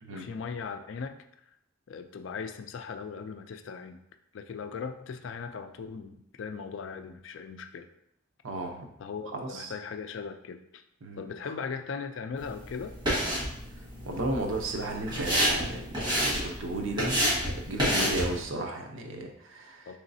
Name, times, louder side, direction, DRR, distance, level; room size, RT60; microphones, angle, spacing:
voice 1, 0.1-1.2 1.9-4.0 4.3-7.9 9.0-10.8 11.2-13.2 19.9-20.0, left 5 dB, 70° left, 8 dB, 0.4 m, -38 dB
voice 2, 8.4-8.9 9.4-9.7 11.0-11.2 14.1-19.9, right 2 dB, 85° right, 2 dB, 0.7 m, -34 dB
sound 1, 12.4-18.4, equal, 25° right, 1.3 m, -30 dB
3.9 x 3.4 x 2.6 m, 0.77 s
head